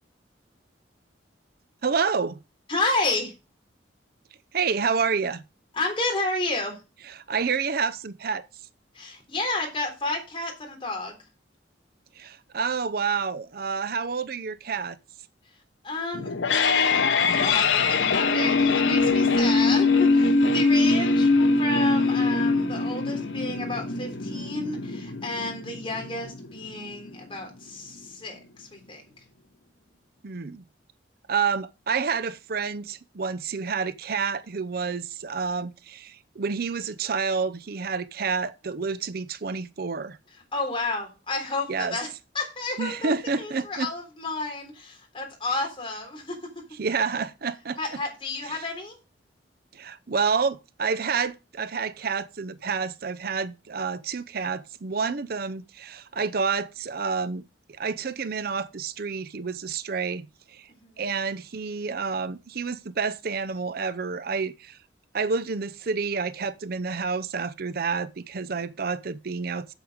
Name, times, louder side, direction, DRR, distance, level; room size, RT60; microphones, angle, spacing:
voice 1, 1.8-2.4 4.5-5.4 7.1-8.5 12.2-15.0 30.2-30.6 31.3-40.2 41.7-42.0 42.8-43.9 46.8-47.8 48.4-48.6 49.7-57.4 57.7-60.7 61.0-64.8 65.1-69.7, right 5 dB, 55° right, 0.6 m, -29 dB
voice 2, 2.7-3.3 5.7-6.8 8.9-11.2 15.8-21.3 21.6-29.0 40.5-42.1 42.3-46.6 47.8-49.0 60.8-61.0, left 2 dB, 30° left, 3.7 m, -31 dB
sound 1, 16.1-27.1, left 3 dB, 90° left, 0.9 m, -23 dB
8.1 x 7.8 x 5.0 m
head